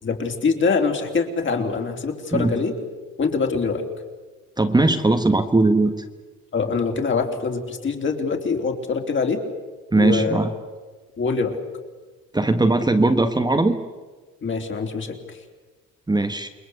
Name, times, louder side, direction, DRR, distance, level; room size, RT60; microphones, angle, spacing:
voice 1, 0.0-2.7 3.2-3.8 6.5-9.4 9.9-10.4 11.2-11.6 14.4-15.4, left 4 dB, 40° left, 4 dB, 3.7 m, -24 dB
voice 2, 4.6-6.0 9.9-10.5 12.3-13.8 16.1-16.5, right 2 dB, 15° right, 6 dB, 1.4 m, -19 dB
29.0 x 21.5 x 8.2 m, 1.3 s
cardioid pair, 120°, 31 cm